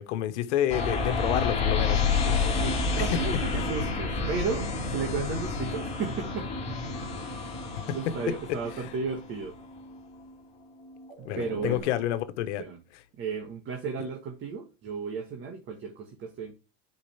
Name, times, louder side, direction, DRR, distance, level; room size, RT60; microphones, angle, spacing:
voice 1, 0.0-2.0 7.9-8.0 11.2-12.6, left 12 dB, 75° left, 1.3 m, -29 dB
sound 1, 0.7-10.3 10.8-11.8, left 4 dB, 20° left, 2.9 m, -30 dB
voice 2, 2.3-6.5 7.3-7.6 7.9-9.6 11.2-12.1 12.6-12.8 13.2-16.5, right 5 dB, 35° right, 1.5 m, -34 dB
9.8 x 5.4 x 3.4 m
supercardioid pair, 140°, 35 cm